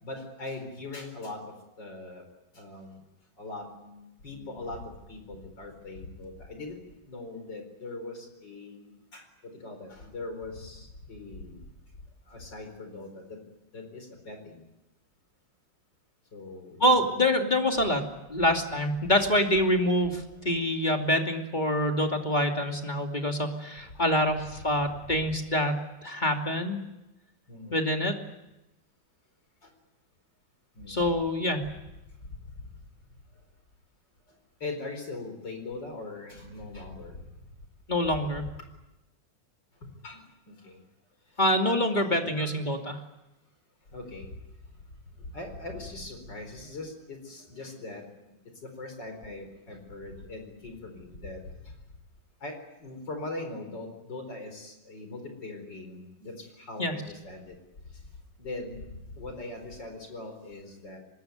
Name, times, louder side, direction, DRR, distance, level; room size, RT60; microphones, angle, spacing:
voice 1, 0.0-1.4 1.8-2.2 2.6-3.0 3.4-4.8 5.1-6.8 7.1-9.2 9.6-11.6 12.3-13.2 13.7-14.5 16.3-17.0 20.5-20.6 27.5-27.8 30.8-31.1 34.6-37.2 40.0-40.2 40.5-40.8 42.0-42.5 43.9-44.3 45.3-48.0 48.6-51.4 52.4-52.6 52.8-57.6 58.4-58.8 59.2-61.0, left 2 dB, 65° left, 5 dB, 5.2 m, -41 dB
voice 2, 16.8-18.0 18.3-26.8 27.7-28.1 30.9-31.7 37.9-38.4 41.4-43.0 56.8-56.9, left 1 dB, 25° left, 3 dB, 2.7 m, -26 dB
24.5 x 21.0 x 9.3 m, 0.97 s
omnidirectional pair, 2.1 m